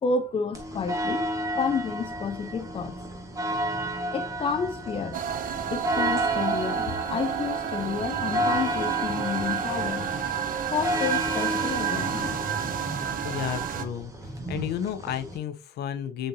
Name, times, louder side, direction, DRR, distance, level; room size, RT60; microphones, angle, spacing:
voice 1, 0.0-1.2 1.6-3.0 4.1-5.2 5.7-10.1 10.7-12.4, left 5 dB, 30° left, 0.7 m, -30 dB
sound 1, 0.5-15.4, equal, 20° right, 2.0 m, -32 dB
sound 2, 5.1-13.8, right 9 dB, 55° right, 1.0 m, -30 dB
voice 2, 13.2-14.1 14.5-16.3, left 9 dB, 75° left, 1.0 m, -32 dB
7.8 x 4.4 x 2.9 m
cardioid pair, 110°, 17 cm